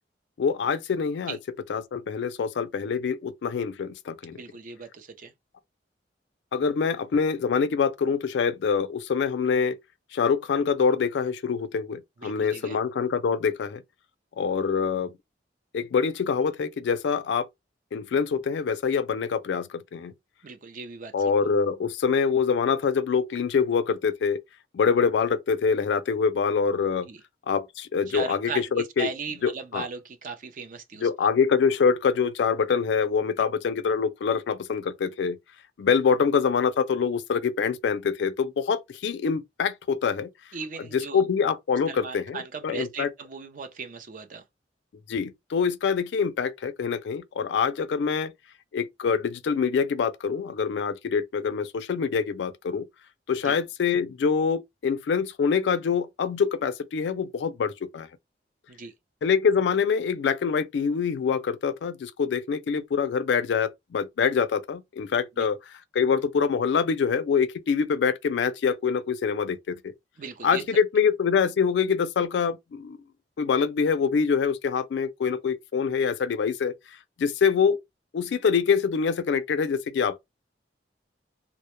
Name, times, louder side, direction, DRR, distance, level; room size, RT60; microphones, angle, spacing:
voice 1, 0.4-1.4 1.7-4.4 6.5-9.8 10.1-13.8 14.4-15.1 15.7-17.5 17.9-20.1 21.1-24.4 24.7-27.1 27.5-29.1 29.4-29.9 31.0-35.4 35.8-40.3 40.9-43.1 45.1-48.3 48.7-52.9 53.3-58.1 59.2-69.9 70.4-73.0 73.4-76.7 77.2-77.8 78.1-80.2, left 6 dB, 80° left, 0.3 m, -25 dB
voice 2, 4.3-5.3 12.2-12.8 20.4-21.1 27.0-27.2 28.1-28.6 29.0-31.1 40.5-41.2 41.9-44.4 53.4-53.6 58.7-58.9 65.4-65.5 70.2-70.6, right 5 dB, 50° right, 0.4 m, -37 dB
2.1 x 2.0 x 2.9 m
head